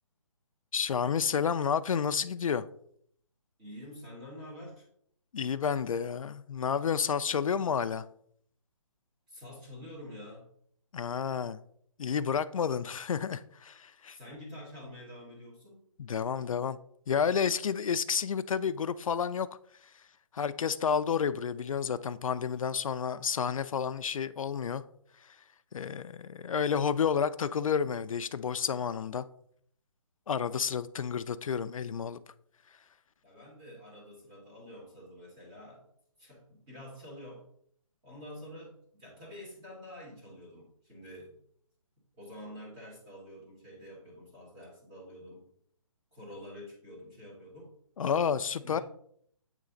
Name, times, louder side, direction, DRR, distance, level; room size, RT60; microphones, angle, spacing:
voice 1, 0.7-2.7 5.3-8.0 10.9-11.6 12.0-14.2 16.0-16.8 17.1-19.5 20.3-24.8 25.7-29.2 30.3-32.2 48.0-48.8, left 7 dB, 75° left, 0.4 m, -30 dB
voice 2, 3.6-4.9 9.3-10.5 14.1-15.8 33.2-35.9 36.2-37.5 38.0-41.4 42.1-45.4 46.1-47.7 48.6-48.8, left 1 dB, 10° right, 1.3 m, -47 dB
8.2 x 3.2 x 3.8 m
hypercardioid pair, 180°, 18 cm